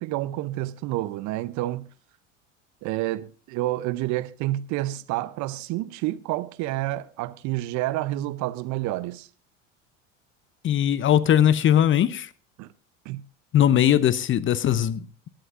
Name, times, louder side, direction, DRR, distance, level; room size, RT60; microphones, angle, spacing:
voice 1, 0.0-1.9 2.8-9.3 12.6-12.7 13.1-13.2, right 16 dB, 50° right, 0.7 m, -29 dB
voice 2, 10.6-12.3 13.5-15.3, left 10 dB, 30° left, 0.7 m, -20 dB
18.5 x 11.5 x 2.5 m
hypercardioid pair, 75°, 38 cm